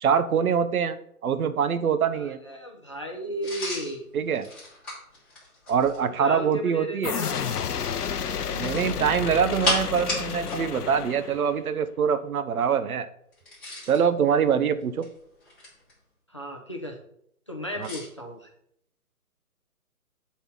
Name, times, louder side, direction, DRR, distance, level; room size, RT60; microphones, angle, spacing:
voice 1, 0.0-2.4 4.1-4.5 5.7-7.1 8.5-13.1 13.9-15.1 17.8-17.9, right 7 dB, 70° right, 12 dB, 0.8 m, -24 dB
voice 2, 2.1-4.0 6.0-7.5 16.3-17.0 17.5-18.5, equal, 20° left, 1 dB, 0.5 m, -35 dB
sound 1, 3.4-6.1 8.5-10.7 10.9-11.1 13.3-14.0 14.8-15.9 17.8-18.1, left 2 dB, ahead, 1.4 m, -33 dB
sound 2, 7.0-11.7, left 7 dB, 80° left, 0.8 m, -31 dB
7.7 x 4.2 x 5.3 m, 0.71 s
hypercardioid pair, 160°, 45 cm